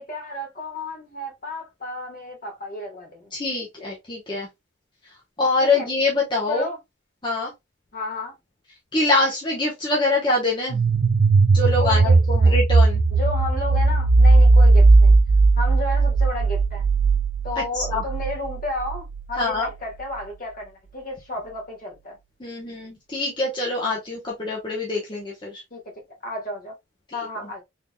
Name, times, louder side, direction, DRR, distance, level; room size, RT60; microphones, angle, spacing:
voice 1, 0.0-3.3 5.6-5.9 6.5-6.8 7.9-8.4 11.8-12.6 13.1-15.2 15.6-16.9 17.4-22.2 25.7-25.8 26.2-26.7 27.1-27.6, left 1 dB, 45° left, 1.4 m, -32 dB
voice 2, 3.3-4.5 5.4-6.7 7.2-7.5 8.9-10.9 11.5-13.0 17.9-18.1 19.4-19.7 22.4-25.6 27.1-27.2, left 3 dB, 20° left, 0.9 m, -24 dB
sound 1, 10.7-19.4, right 3 dB, 45° right, 0.4 m, -17 dB
3.9 x 3.5 x 2.3 m
head